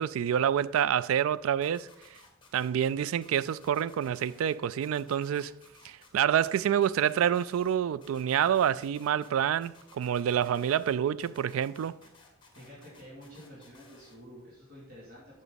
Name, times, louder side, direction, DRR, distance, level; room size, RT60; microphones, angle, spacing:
voice 1, 0.0-1.9 2.5-5.5 5.8-12.0, right 9 dB, 90° right, 0.3 m, -27 dB
sound 1, 1.6-2.9 3.2-4.5 4.8-6.1 6.4-9.3 9.6-10.9 11.2-14.1, left 4 dB, 25° left, 1.5 m, -57 dB
voice 2, 12.5-15.4, equal, 45° right, 2.8 m, -49 dB
9.2 x 6.5 x 4.0 m
head